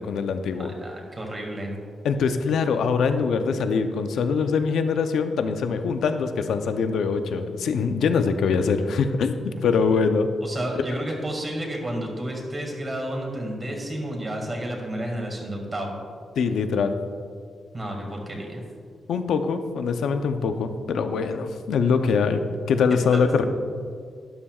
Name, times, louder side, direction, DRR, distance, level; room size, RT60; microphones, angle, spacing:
voice 1, 0.0-0.7 2.0-10.3 16.4-17.0 19.1-22.4 22.7-23.4, left 5 dB, 85° left, 8 dB, 0.6 m, -23 dB
voice 2, 0.6-1.7 10.4-15.9 17.7-18.6 22.9-23.2, right 1 dB, 25° right, 1 dB, 2.1 m, -31 dB
12.5 x 11.5 x 2.4 m, 2.2 s
cardioid pair, 125°, 0 cm